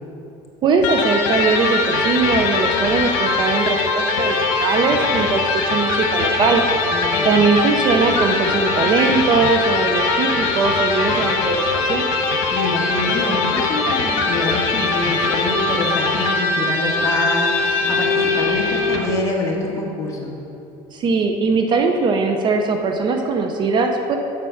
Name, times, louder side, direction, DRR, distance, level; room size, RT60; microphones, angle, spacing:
voice 1, 0.6-6.6 7.2-12.0 20.9-24.2, right 4 dB, 40° right, 4 dB, 0.6 m, -20 dB
Electric guitar, 0.8-19.2, left 3 dB, 75° left, 1.2 m, -21 dB
voice 2, 6.9-7.5 12.5-20.3, left 2 dB, 25° left, -2 dB, 1.5 m, -26 dB
7.5 x 6.7 x 5.8 m, 2.8 s
cardioid pair, 140°, 12 cm